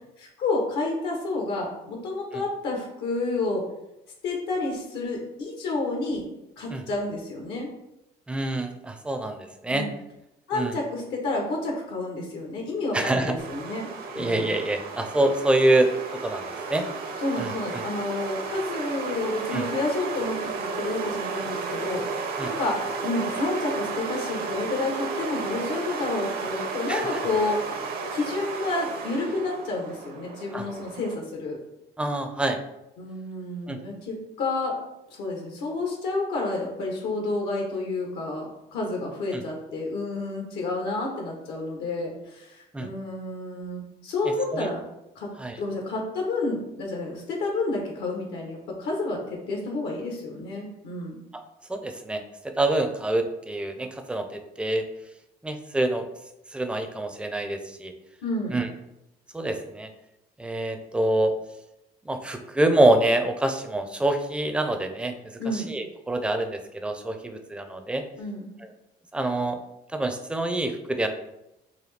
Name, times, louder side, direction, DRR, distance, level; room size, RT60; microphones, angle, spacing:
voice 1, 0.2-3.6 4.2-6.2 6.6-7.7 9.7-9.9 10.5-13.9 14.1-14.4 17.2-22.0 22.4-27.6 28.1-31.6 33.0-34.7 35.1-44.8 45.1-45.3 45.6-51.2 58.2-58.6 65.4-65.7 68.2-68.5, left 2 dB, 85° left, 0 dB, 0.9 m, -30 dB
voice 2, 8.3-9.9 10.5-10.7 12.9-13.3 14.1-15.9 16.2-16.4 16.7-16.8 17.4-17.8 19.5-19.7 22.4-22.5 26.9-27.0 30.5-30.7 32.0-32.6 33.7-33.8 39.3-39.4 42.7-42.9 44.5-44.7 45.4-45.6 51.7-52.2 52.6-54.2 54.6-54.8 55.4-56.0 56.5-57.9 58.5-58.7 59.3-59.9 60.4-61.3 62.0-68.0 69.1-69.6 69.9-71.1, right 1 dB, 5° right, 6 dB, 0.4 m, -26 dB
sound 1, 13.4-31.1, right 4 dB, 65° right, 0.7 m, -33 dB
4.1 x 2.6 x 3.2 m, 0.87 s
cardioid pair, 110°, 17 cm